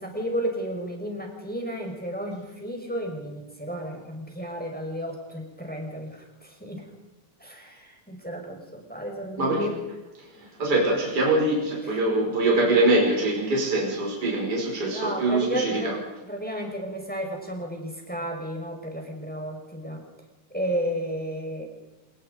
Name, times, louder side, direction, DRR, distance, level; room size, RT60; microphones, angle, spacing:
voice 1, 0.0-6.8 7.4-9.8 10.4-10.5 11.8-12.0 14.9-16.0 16.2-20.0 20.5-21.7, equal, ahead, 1 dB, 5.3 m, -32 dB
voice 2, 10.6-16.0, right 2 dB, 25° right, -1 dB, 5.9 m, -23 dB
27.5 x 20.0 x 5.3 m, 1.1 s
omnidirectional pair, 4.0 m